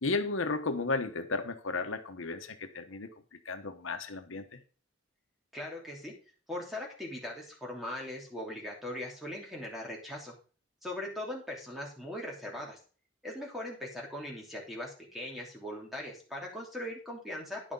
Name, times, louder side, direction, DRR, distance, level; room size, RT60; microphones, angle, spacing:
voice 1, 0.0-3.1 3.4-4.6, left 3 dB, 90° left, 8 dB, 1.1 m, -34 dB
voice 2, 5.5-6.1 6.5-10.3 10.8-12.8 13.2-17.6, left 1 dB, ahead, -2 dB, 3.2 m, -40 dB
10.5 x 6.4 x 5.4 m, 0.38 s
head